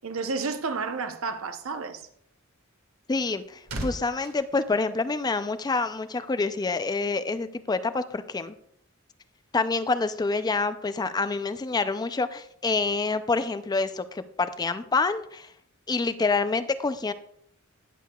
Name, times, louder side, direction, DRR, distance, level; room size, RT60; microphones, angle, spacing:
voice 1, 0.0-2.0, right 4 dB, 70° right, 0.8 m, -31 dB
voice 2, 3.1-8.6 9.5-15.5 15.9-17.1, left 3 dB, 20° left, 0.4 m, -27 dB
sound 1, 3.1-5.6 5.9-6.2, right 1 dB, 90° right, 1.6 m, -39 dB
18.0 x 6.6 x 2.3 m
head